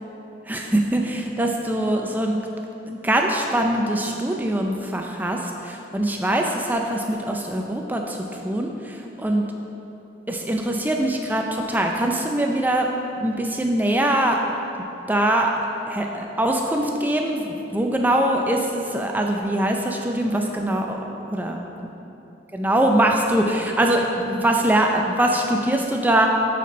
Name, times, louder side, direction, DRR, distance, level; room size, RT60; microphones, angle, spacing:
voice 1, 0.5-2.4 2.9-9.5 10.3-14.4 15.1-21.6 22.5-26.3, right 1 dB, 10° right, 2 dB, 0.4 m, -23 dB
9.2 x 4.3 x 3.1 m, 2.9 s
head